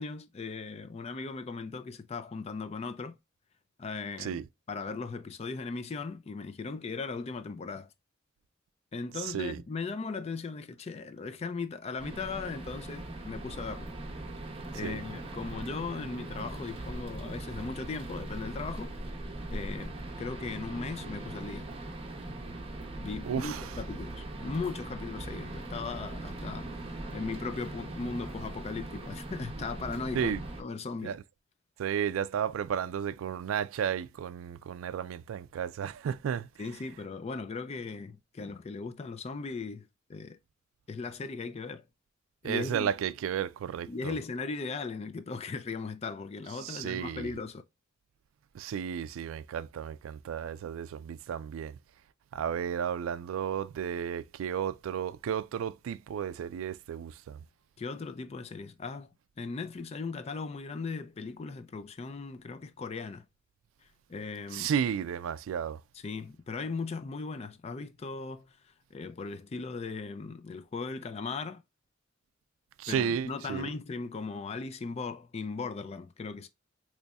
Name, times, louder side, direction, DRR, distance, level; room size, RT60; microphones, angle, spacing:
voice 1, 0.0-3.2 3.8-4.4 4.7-7.9 8.9-13.9 14.7-18.9 19.5-21.7 23.0-31.2 36.6-40.4 40.9-41.9 42.4-42.9 43.9-47.6 57.8-59.1 59.4-63.3 64.1-64.7 65.9-68.6 68.9-71.6 72.9-76.5, left 4 dB, 30° left, 0.3 m, -38 dB
voice 2, 9.2-9.6 14.8-15.0 23.2-23.7 30.1-30.4 31.0-31.2 31.8-36.5 42.4-44.1 46.6-47.3 48.5-51.8 52.3-57.4 64.5-65.8 72.8-73.7, right 8 dB, 80° right, 0.3 m, -33 dB
sound 1, 12.0-30.6, right 2 dB, 30° right, 0.7 m, -40 dB
4.0 x 3.1 x 2.2 m
head